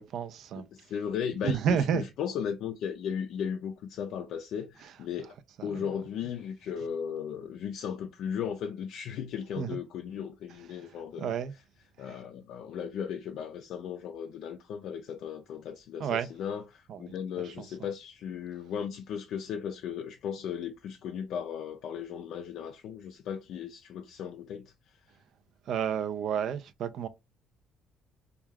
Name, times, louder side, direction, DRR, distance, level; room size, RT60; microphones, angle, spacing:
voice 1, 0.0-0.7 1.4-2.0 4.8-4.9 5.6-5.9 9.6-9.8 10.7-11.5 12.0-12.2 16.0-16.3 16.9-17.2 17.4-17.9 25.7-27.1, right 8 dB, 60° right, 0.3 m, -31 dB
voice 2, 0.7-5.3 5.6-11.3 12.0-24.7, left 8 dB, 70° left, 0.3 m, -36 dB
2.3 x 2.2 x 3.3 m
cardioid pair, 125°, 0 cm